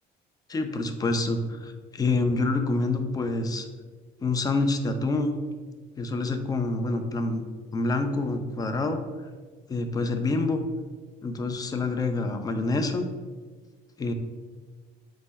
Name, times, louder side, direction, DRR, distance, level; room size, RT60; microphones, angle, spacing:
voice 1, 0.5-3.7 4.2-5.4 6.0-7.4 7.7-9.0 9.7-10.6 11.2-13.0 14.0-14.1, left 3 dB, 20° left, 7 dB, 0.3 m, -27 dB
4.1 x 2.1 x 3.3 m, 1.4 s
cardioid pair, 110°, 17 cm